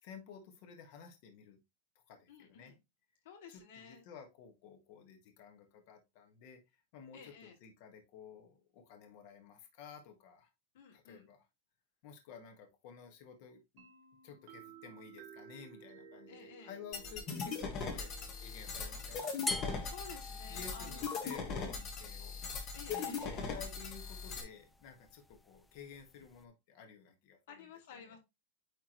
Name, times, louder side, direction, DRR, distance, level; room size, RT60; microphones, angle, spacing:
voice 1, 0.0-1.6 2.1-2.7 3.5-6.6 6.9-10.5 10.9-11.5 12.0-13.8 14.2-18.1 18.4-19.3 20.5-22.4 22.9-27.6 27.9-28.2, left 6 dB, 45° left, 1.6 m, -53 dB
voice 2, 2.3-2.8 3.2-4.1 7.1-7.6 10.7-11.3 16.3-16.7 19.8-21.2 22.7-23.5 27.5-28.2, left 6 dB, 65° left, 2.3 m, -53 dB
sound 1, 13.8-21.4, right 7 dB, 50° right, 1.8 m, -58 dB
sound 2, 16.9-24.4, left 5 dB, 30° left, 1.4 m, -40 dB
sound 3, 19.5-26.5, left 2 dB, 5° left, 0.4 m, -46 dB
9.2 x 3.6 x 3.0 m
supercardioid pair, 165°, 0 cm